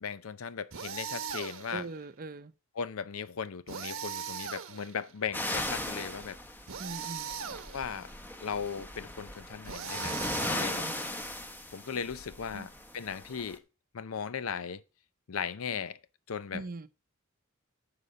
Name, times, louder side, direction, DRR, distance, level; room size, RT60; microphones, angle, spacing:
voice 1, 0.0-1.9 2.7-6.4 7.7-8.1 8.4-10.9 11.7-13.6 13.9-14.8 15.3-16.0 16.3-16.6, left 6 dB, 90° left, 0.6 m, -37 dB
sound 1, 0.7-1.9 3.7-5.1 6.7-8.0 9.6-11.1, right 7 dB, 75° right, 0.9 m, -40 dB
voice 2, 1.7-2.5 6.8-7.3 10.6-10.9 12.5-12.7 16.5-16.9, right 3 dB, 45° right, 0.6 m, -41 dB
sound 2, 5.3-13.6, left 1 dB, 10° left, 0.8 m, -38 dB
9.4 x 5.1 x 6.7 m
head